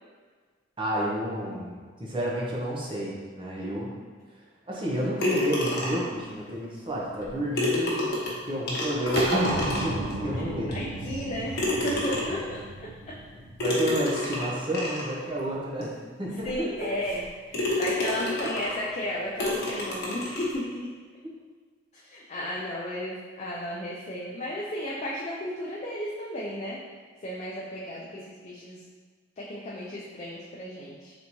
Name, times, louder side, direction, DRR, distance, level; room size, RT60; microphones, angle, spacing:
voice 1, 0.8-3.9 4.7-10.7 13.6-15.9 16.2-16.9 18.4-18.5 21.2-21.3, equal, 25° right, -4 dB, 0.7 m, -30 dB
sound 1, 5.2-6.2 7.2-7.3 7.6-10.1 10.7-10.8 11.6-12.5 13.6-15.1 15.8-15.9 16.4-16.5 17.1-17.2 17.5-18.8 19.4-20.5, left 1 dB, 60° left, 1.0 m, -29 dB
sound 2, 9.2-13.9, right 2 dB, 80° right, 0.5 m, -33 dB
voice 2, 10.7-13.2 16.4-20.9 21.9-26.8 27.2-28.8 29.4-31.1, equal, 35° left, -5 dB, 0.4 m, -34 dB
4.0 x 3.4 x 3.0 m, 1.5 s
head